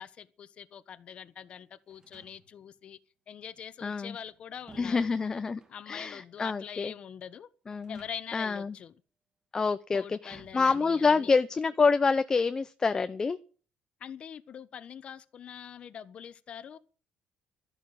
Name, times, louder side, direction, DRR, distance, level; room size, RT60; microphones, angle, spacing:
voice 1, 0.0-3.0 3.3-5.1 5.7-7.5 7.9-9.0 9.9-11.3 14.0-16.8, left 8 dB, 45° left, 1.2 m, -44 dB
sound 1, 1.9-2.7 4.0-5.8 7.7-8.5 8.8-8.9 10.3-11.4, right 3 dB, 25° right, 3.3 m, -57 dB
voice 2, 3.8-4.1 4.8-5.6 5.9-6.9 7.7-8.0 8.3-8.7 9.5-13.4, left 4 dB, 25° left, 0.7 m, -27 dB
12.5 x 11.5 x 7.8 m
cardioid pair, 125°, 3 cm